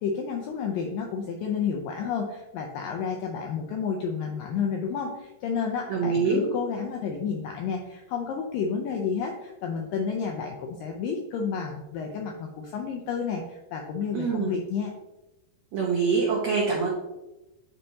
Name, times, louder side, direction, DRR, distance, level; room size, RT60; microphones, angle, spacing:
voice 1, 0.0-14.9, left 6 dB, 80° left, 2 dB, 2.0 m, -31 dB
voice 2, 5.9-6.4 14.1-14.5 15.7-16.9, right 5 dB, 85° right, -3 dB, 1.5 m, -24 dB
10.5 x 4.4 x 2.8 m, 1.0 s
omnidirectional pair, 4.7 m